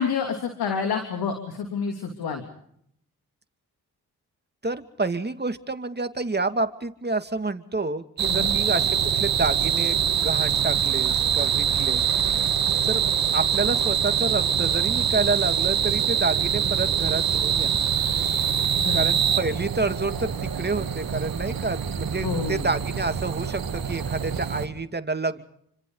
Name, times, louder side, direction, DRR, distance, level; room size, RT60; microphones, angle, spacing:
voice 1, 0.0-2.4 8.3-8.5 18.8-19.2 22.2-22.7, left 6 dB, 80° left, 5 dB, 3.2 m, -28 dB
voice 2, 4.6-12.0 12.9-13.0 13.3-17.7 18.9-25.4, right 3 dB, 25° right, 8 dB, 2.4 m, -28 dB
sound 1, 8.2-24.7, right 8 dB, 70° right, 2.7 m, -24 dB
29.5 x 25.5 x 4.1 m, 0.69 s
supercardioid pair, 45°, 37 cm